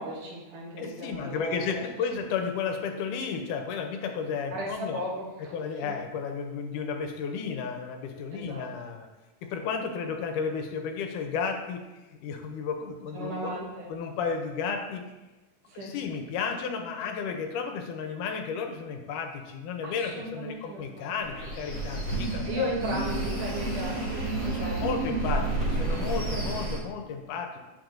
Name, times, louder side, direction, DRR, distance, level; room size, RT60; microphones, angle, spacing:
voice 1, 0.0-1.9 4.5-5.5 5.8-5.9 8.3-8.7 13.1-13.9 15.7-15.9 19.8-21.1 22.4-25.0 26.3-26.4, equal, 70° right, -4 dB, 2.8 m, -36 dB
voice 2, 0.8-5.0 5.5-9.1 9.4-11.9 12.2-13.5 13.9-15.1 15.7-22.7 24.4-27.5, left 6 dB, 85° left, 4 dB, 2.2 m, -33 dB
sound 1, 21.2-26.8, right 2 dB, 40° right, 1.2 m, -30 dB
8.9 x 6.9 x 2.6 m, 1.1 s
omnidirectional pair, 3.8 m